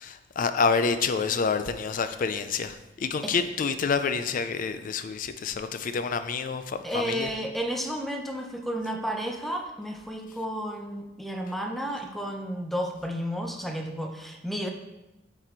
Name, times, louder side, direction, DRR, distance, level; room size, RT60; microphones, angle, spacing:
voice 1, 0.0-7.3, left 5 dB, 45° left, 0.4 m, -28 dB
voice 2, 6.8-14.7, equal, ahead, 0.6 m, -32 dB
7.8 x 4.2 x 4.4 m
head